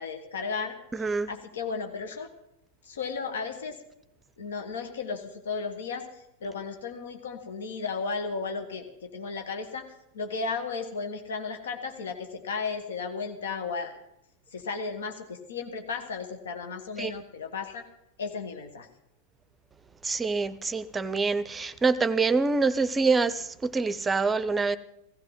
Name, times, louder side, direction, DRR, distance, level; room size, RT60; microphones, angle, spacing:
voice 1, 0.0-0.7 1.3-2.3 2.8-3.8 4.4-14.0 14.5-17.8 18.2-18.9, left 5 dB, 65° left, 1.7 m, -34 dB
voice 2, 0.9-1.3 17.0-17.1 20.0-24.8, right 4 dB, 15° right, 0.7 m, -26 dB
16.5 x 16.0 x 4.0 m
figure-of-eight pair, 90°, 0 cm